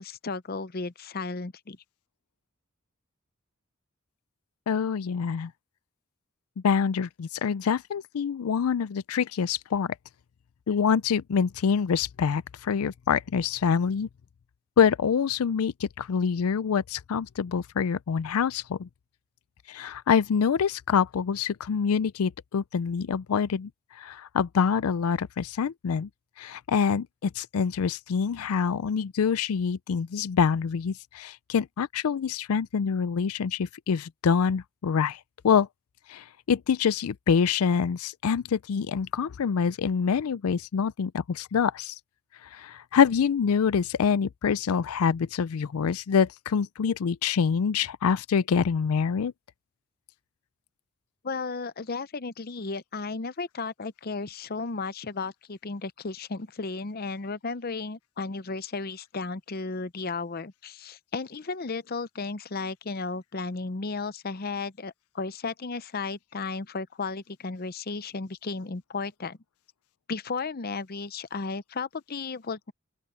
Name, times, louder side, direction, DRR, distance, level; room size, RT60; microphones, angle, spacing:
voice 1, 0.0-1.8 51.2-69.4 70.1-72.7, left 4 dB, 45° left, 0.7 m, -34 dB
voice 2, 4.7-5.5 6.6-9.9 10.7-14.1 14.8-18.9 19.7-23.7 24.0-26.1 26.4-35.2 35.4-35.7 36.1-41.9 42.5-49.3, left 6 dB, 85° left, 0.4 m, -26 dB
open air
head